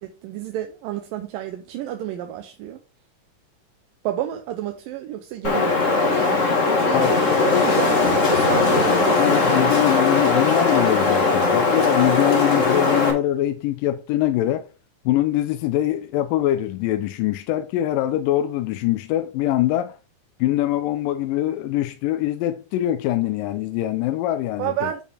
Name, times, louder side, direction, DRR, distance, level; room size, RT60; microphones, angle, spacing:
voice 1, 0.0-2.8 4.0-10.0 24.6-25.0, right 12 dB, 85° right, 2.5 m, -30 dB
Wind, 5.4-13.1, left 3 dB, 45° left, 1.0 m, -19 dB
voice 2, 9.2-14.7 15.1-20.0 20.4-24.9, left 13 dB, 85° left, 2.2 m, -23 dB
8.4 x 5.2 x 3.4 m
omnidirectional pair, 3.9 m